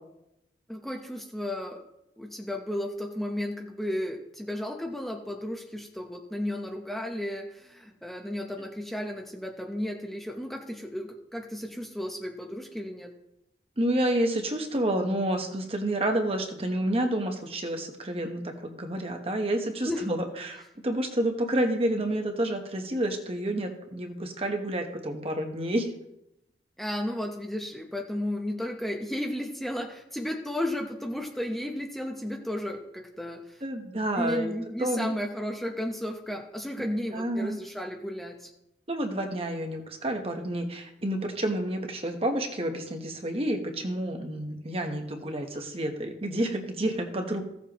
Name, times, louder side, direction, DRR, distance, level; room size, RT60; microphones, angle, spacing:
voice 1, 0.7-1.8 2.2-13.1 19.8-20.0 26.8-33.6 34.1-38.5, left 1 dB, ahead, 1 dB, 0.8 m, -34 dB
voice 2, 13.8-25.9 33.6-34.5 34.8-35.1 36.8-37.6 38.9-47.4, right 1 dB, 35° right, 4 dB, 1.2 m, -29 dB
16.0 x 7.4 x 3.0 m, 0.86 s
head